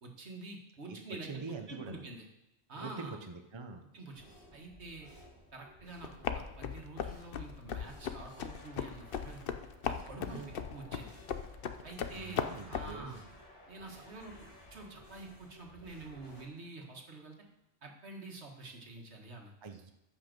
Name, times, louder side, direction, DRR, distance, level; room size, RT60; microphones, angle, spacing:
voice 1, 0.0-2.3 2.7-3.2 3.9-5.1 5.5-9.4 9.9-10.4 10.7-11.1 11.8-12.4 12.7-13.2 13.7-14.3 14.7-17.3 17.8-19.5, right 3 dB, 75° right, 1 dB, 1.9 m, -47 dB
voice 2, 1.3-2.0 2.8-3.8 10.3-10.5 12.1-13.2 19.6-19.9, right 4 dB, 25° right, 4 dB, 0.8 m, -44 dB
sound 1, 4.1-16.4, equal, 35° left, 3.2 m, -56 dB
sound 2, 6.0-13.0, left 7 dB, 60° left, 0.8 m, -38 dB
14.0 x 5.7 x 5.3 m, 0.89 s
omnidirectional pair, 1.1 m